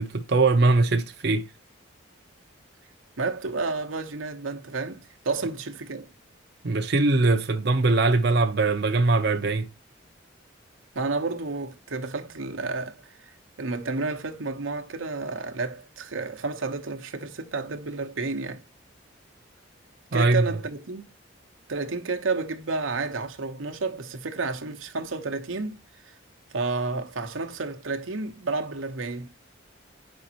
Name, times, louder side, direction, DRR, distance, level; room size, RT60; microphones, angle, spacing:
voice 1, 0.0-1.4 6.6-9.7 20.1-20.4, right 3 dB, 55° right, 0.6 m, -21 dB
voice 2, 3.2-6.1 10.9-12.9 13.6-18.6 20.1-21.0 21.7-25.8 26.5-29.3, right 3 dB, 90° right, 0.9 m, -31 dB
6.9 x 5.3 x 2.8 m
head